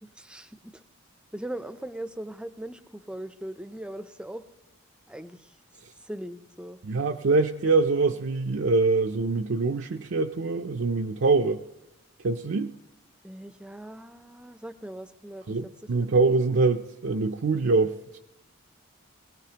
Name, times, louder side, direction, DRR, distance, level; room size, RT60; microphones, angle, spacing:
voice 1, 0.0-0.8 1.3-4.4 5.1-5.6 6.0-6.8 13.2-15.7, right 1 dB, 5° right, 11 dB, 0.5 m, -40 dB
voice 2, 6.8-11.6 12.2-12.7 15.5-18.2, right 3 dB, 55° right, 3 dB, 0.5 m, -24 dB
21.0 x 17.5 x 2.9 m, 0.94 s
head